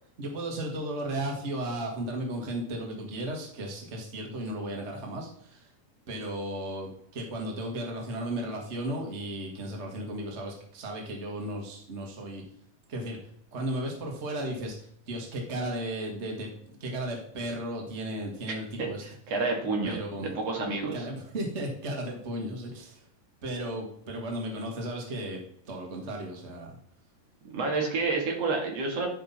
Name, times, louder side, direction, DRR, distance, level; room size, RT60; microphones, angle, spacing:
voice 1, 0.2-5.7 6.1-12.4 12.9-13.2 13.5-19.0 19.8-20.3 20.9-23.0 23.4-25.4 25.7-26.8, right 1 dB, 65° right, 1 dB, 0.6 m, -35 dB
voice 2, 18.8-21.1 27.5-29.1, right 3 dB, 50° right, 0 dB, 2.5 m, -29 dB
11.5 x 5.4 x 4.2 m, 0.65 s
omnidirectional pair, 4.3 m